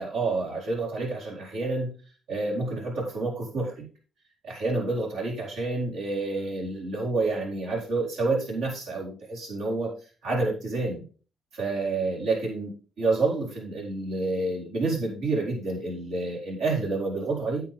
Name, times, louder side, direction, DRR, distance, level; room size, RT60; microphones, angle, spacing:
voice 1, 0.0-1.9 2.3-3.8 4.4-9.9 10.2-11.0 11.5-12.7 13.0-17.6, right 3 dB, 85° right, -2 dB, 4.5 m, -28 dB
9.6 x 7.8 x 3.8 m, 0.37 s
cardioid pair, 90°, 0 cm